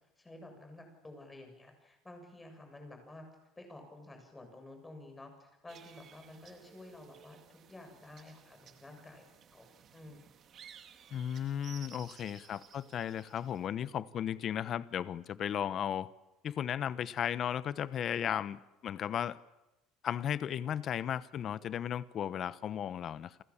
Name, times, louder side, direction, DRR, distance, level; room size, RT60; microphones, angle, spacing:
voice 1, 0.2-3.3 3.6-9.2 9.5-10.2, left 2 dB, 10° left, 7.1 m, -51 dB
sound 1, 5.7-13.7, right 8 dB, 40° right, 2.1 m, -57 dB
voice 2, 11.1-16.1 16.4-19.4 20.0-23.4, left 9 dB, 40° left, 1.0 m, -35 dB
29.5 x 25.0 x 7.3 m
cardioid pair, 145°, 0 cm